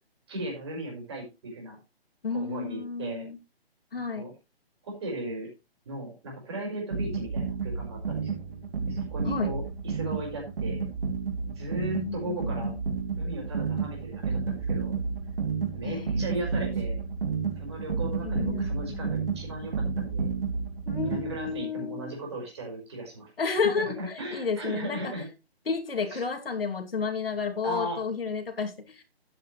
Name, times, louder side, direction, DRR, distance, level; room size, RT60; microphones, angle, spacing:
voice 1, 0.3-1.8 2.3-3.2 4.1-4.3 4.8-5.5 5.9-8.4 8.9-10.9 11.5-12.7 13.2-15.0 15.7-17.0 17.6-20.3 21.0-25.3 26.1-26.2 27.6-28.0, right 1 dB, 25° right, 0 dB, 5.2 m, -37 dB
voice 2, 2.2-3.4 3.9-4.3 9.3-9.5 11.9-12.8 15.8-16.6 18.2-19.1 20.9-22.1 23.4-25.1 25.7-29.0, left 5 dB, 65° left, 4 dB, 2.7 m, -32 dB
sound 1, 6.9-21.6, right 5 dB, 60° right, 2.9 m, -31 dB
12.5 x 9.3 x 3.2 m, 0.27 s
hypercardioid pair, 175°, 31 cm